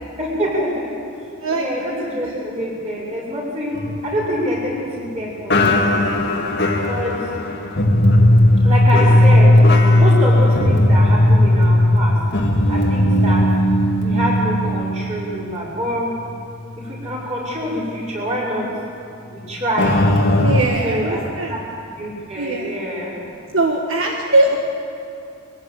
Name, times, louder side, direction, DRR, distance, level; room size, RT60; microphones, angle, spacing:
voice 1, 0.2-0.9 1.5-6.3 6.8-7.3 8.6-9.6 10.0-12.2 12.7-13.5 14.0-16.2 16.8-18.7 19.3-20.0 20.8-21.6 21.9-23.4, equal, 30° right, -5 dB, 5.5 m, -25 dB
voice 2, 1.4-1.9 2.2-2.6 20.4-21.6 22.3-22.7 23.5-24.6, right 2 dB, 65° right, 0 dB, 1.7 m, -21 dB
sound 1, 3.7-5.1 5.5-15.9 16.2-16.4 17.0-17.1 19.8-20.6, left 1 dB, 50° left, 2.1 m, -16 dB
22.5 x 17.0 x 8.3 m, 2.5 s
head